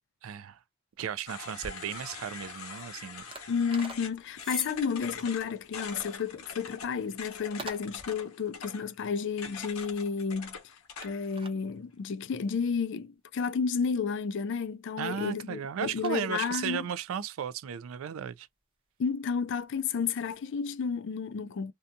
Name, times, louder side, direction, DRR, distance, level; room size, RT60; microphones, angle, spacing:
voice 1, 0.2-0.6 1.0-3.2 15.0-18.5, right 8 dB, 70° right, 0.3 m, -35 dB
sound 1, 0.9-20.7, right 2 dB, 25° right, 0.7 m, -52 dB
sound 2, 1.3-11.4, left 5 dB, 90° left, 0.8 m, -44 dB
sound 3, 1.6-8.1, left 1 dB, ahead, 1.0 m, -49 dB
voice 2, 3.5-10.6 11.0-16.9 19.0-21.7, left 6 dB, 55° left, 0.4 m, -31 dB
2.7 x 2.2 x 2.5 m
head